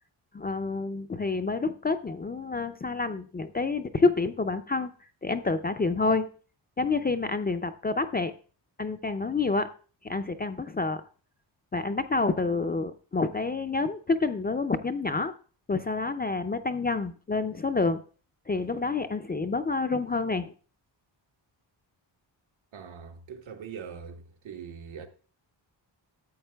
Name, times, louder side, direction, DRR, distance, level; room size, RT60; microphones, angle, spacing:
voice 1, 0.3-4.9 5.2-6.3 6.8-8.3 8.8-9.7 10.0-11.0 11.7-15.3 15.7-18.0 18.5-20.5, left 3 dB, 25° left, 0.3 m, -28 dB
voice 2, 22.7-25.1, right 7 dB, 85° right, 1.2 m, -42 dB
13.5 x 8.0 x 2.2 m
wide cardioid pair, 135°, 45 cm